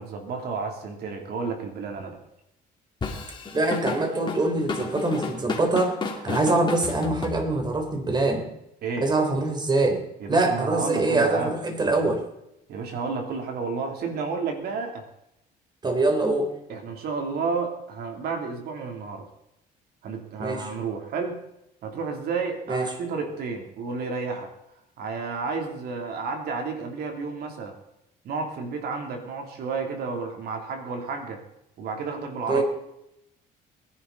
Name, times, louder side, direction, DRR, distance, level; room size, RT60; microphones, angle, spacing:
voice 1, 0.0-2.2 8.8-9.1 10.2-11.5 12.7-15.0 16.7-19.3 20.0-21.4 21.8-24.5 25.0-27.8 28.2-31.4 31.8-32.6, right 4 dB, 70° right, 3 dB, 3.2 m, -31 dB
Drum kit / Drum, 3.0-7.8, left 4 dB, 25° left, 2.7 m, -32 dB
voice 2, 3.5-6.0 6.2-8.5 9.0-10.0 10.3-12.2 15.8-16.5 20.4-20.7 22.7-22.9 32.5-32.6, right 2 dB, 25° right, 5 dB, 3.4 m, -24 dB
21.5 x 11.0 x 4.1 m, 0.83 s
cardioid pair, 110°, 17 cm